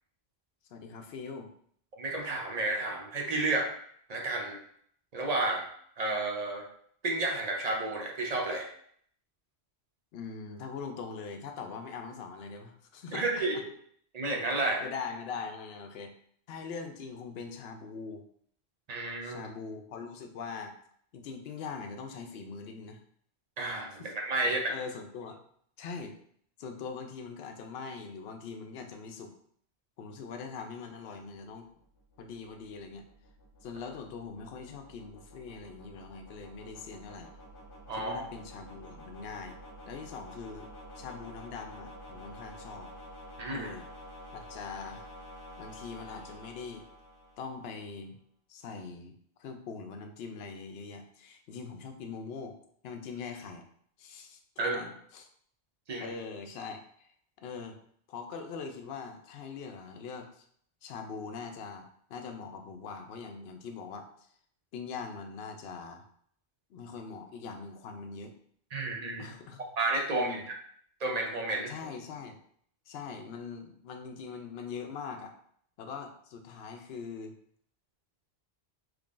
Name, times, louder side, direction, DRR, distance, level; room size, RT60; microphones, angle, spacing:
voice 1, 0.7-1.5 10.1-13.3 14.8-16.1 16.5-18.2 19.2-20.8 21.1-23.0 24.0-24.1 24.4-25.4 25.8-26.1 26.6-29.3 30.0-31.7 32.2-33.0 33.6-37.3 37.9-39.6 39.8-42.9 43.5-43.9 44.3-45.1 45.6-46.9 47.4-48.2 48.5-52.6 52.8-53.6 54.0-55.3 56.0-57.1 57.4-57.8 58.1-60.4 60.8-64.3 64.7-66.1 66.7-68.3 69.2-69.7 70.1-70.5 71.7-72.4 72.9-75.3 75.8-77.3, left 5 dB, 75° left, 5 dB, 0.8 m, -42 dB
voice 2, 2.0-3.7 4.1-4.6 5.1-5.6 6.0-6.7 7.0-8.7 13.1-13.7 14.1-14.8 18.9-19.5 23.6-24.7 37.9-38.2 43.4-43.7 54.6-54.8 55.9-56.1 68.7-69.3 69.8-70.4 71.0-71.7, right 2 dB, 45° right, 1 dB, 0.6 m, -31 dB
sound 1, 31.6-47.8, equal, 30° left, 0.9 m, -49 dB
3.7 x 3.2 x 2.4 m, 0.63 s
omnidirectional pair, 1.1 m